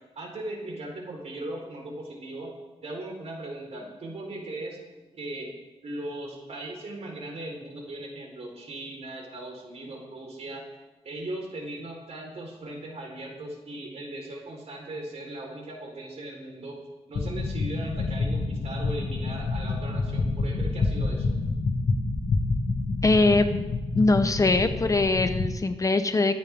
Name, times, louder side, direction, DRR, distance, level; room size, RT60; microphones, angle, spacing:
voice 1, 0.2-2.5 2.8-4.8 5.1-5.5 5.8-10.6 11.0-16.8 17.1-21.3, right 1 dB, 70° right, 0 dB, 4.1 m, -38 dB
sound 1, 17.1-25.5, left 3 dB, 85° left, 1.9 m, -28 dB
voice 2, 23.0-23.5 24.0-26.3, left 3 dB, 30° left, 9 dB, 0.9 m, -22 dB
24.5 x 9.4 x 3.6 m, 1.2 s
wide cardioid pair, 110°, 12 cm